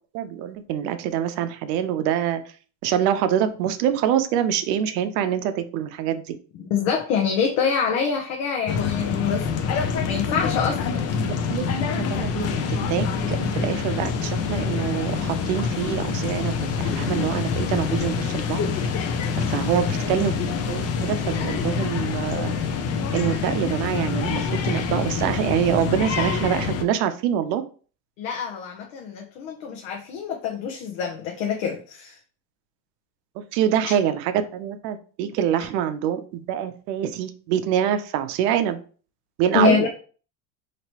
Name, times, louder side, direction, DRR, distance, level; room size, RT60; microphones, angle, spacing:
voice 1, 0.1-2.4 2.8-6.4 11.1-16.5 17.0-18.6 19.4-22.5 23.1-27.6 33.4-38.8 39.4-39.9, right 9 dB, 75° right, 10 dB, 0.6 m, -25 dB
voice 2, 6.5-9.8 10.1-11.1 19.5-19.7 28.2-32.2 39.5-39.9, left 6 dB, 70° left, 1 dB, 0.8 m, -26 dB
sound 1, 8.7-26.8, left 5 dB, 35° left, 0.5 m, -26 dB
3.0 x 2.9 x 2.9 m, 0.40 s
supercardioid pair, 110°, 49 cm